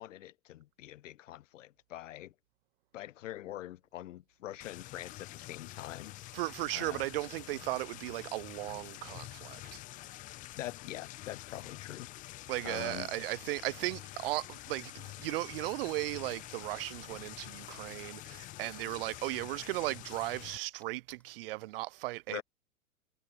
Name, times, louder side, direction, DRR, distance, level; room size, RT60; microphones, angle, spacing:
voice 1, 0.0-2.3 2.9-6.2 6.7-7.1 10.5-12.1 12.6-13.1 22.3-22.4, left 14 dB, 60° left, 1.0 m, -44 dB
sound 1, 4.6-20.6, left 17 dB, 20° left, 0.5 m, -47 dB
voice 2, 6.3-9.8 12.5-22.4, right 19 dB, 45° right, 0.6 m, -36 dB
sound 2, 19.7-21.6, left 1 dB, 5° left, 5.5 m, -72 dB
hypercardioid pair, 110°, 42 cm